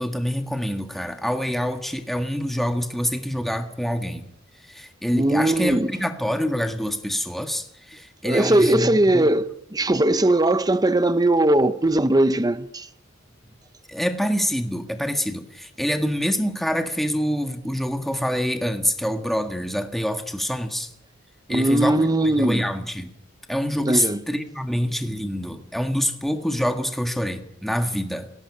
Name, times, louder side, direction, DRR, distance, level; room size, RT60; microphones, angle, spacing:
voice 1, 0.0-4.3 4.6-9.3 13.9-20.9 21.5-23.1 23.5-28.3, equal, ahead, 1.7 m, -26 dB
voice 2, 5.1-5.9 8.2-12.9 21.5-22.7 23.9-24.2, right 1 dB, 20° right, 0.9 m, -20 dB
18.5 x 17.0 x 9.8 m
head